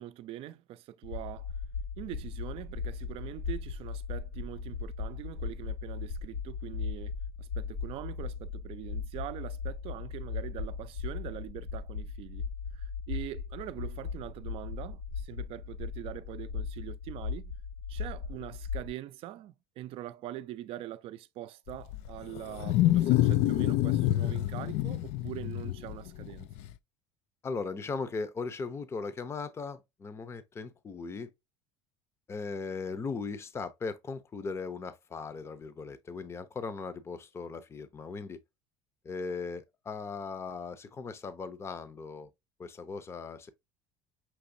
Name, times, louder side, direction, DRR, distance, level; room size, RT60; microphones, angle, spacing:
voice 1, 0.0-1.5 2.0-12.5 12.7-17.5 17.9-26.5, right 14 dB, 55° right, 0.5 m, -43 dB
sound 1, 1.0-18.9, left 5 dB, 85° left, 2.2 m, -38 dB
Wild animals, 21.7-26.7, left 14 dB, 70° left, 0.4 m, -27 dB
voice 2, 27.4-31.3 32.3-38.4 39.0-42.3 42.6-43.5, left 4 dB, 25° left, 0.6 m, -38 dB
6.0 x 3.0 x 2.6 m
supercardioid pair, 115°, 11 cm